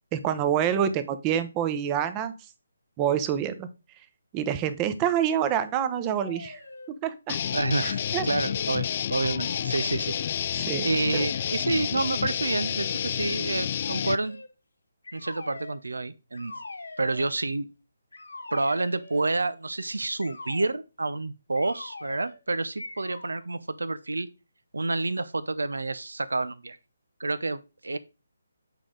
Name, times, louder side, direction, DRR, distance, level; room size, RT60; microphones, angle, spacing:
voice 1, 0.1-2.3 3.0-3.7 4.3-6.6 6.9-7.4 8.1-8.3 10.6-11.3, right 9 dB, 20° right, 0.8 m, -27 dB
sound 1, 6.0-6.9 7.3-8.8 9.1-10.4 11.1-11.6 12.4-13.1 13.8-14.5 15.0-15.8 16.3-17.3 18.1-19.3 20.2-20.7 21.5-22.4 22.8-23.4, left 3 dB, 75° left, 1.4 m, -42 dB
sound 2, 7.3-14.2, left 9 dB, 40° left, 0.3 m, -30 dB
voice 2, 7.5-10.1 10.8-14.4 15.1-16.6 17.0-17.7 18.5-24.3 24.7-26.8 27.2-28.0, right 2 dB, 75° right, 0.7 m, -29 dB
8.4 x 5.0 x 3.8 m
figure-of-eight pair, 145°, 0 cm